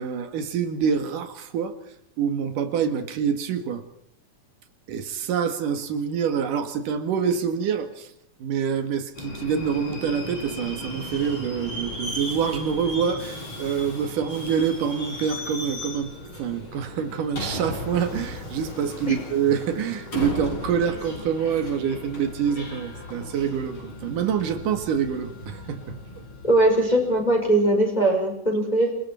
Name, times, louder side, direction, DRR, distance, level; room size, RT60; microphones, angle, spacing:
voice 1, 0.0-1.8 2.2-3.8 4.9-8.1 8.4-16.1 16.4-26.0, right 7 dB, 85° right, 8 dB, 3.4 m, -26 dB
Subway metro underground, 9.1-27.6, left 1 dB, 40° left, 6.3 m, -36 dB
voice 2, 26.4-28.9, right 1 dB, 10° left, 1 dB, 5.3 m, -20 dB
28.0 x 22.0 x 4.4 m, 0.73 s
omnidirectional pair, 3.6 m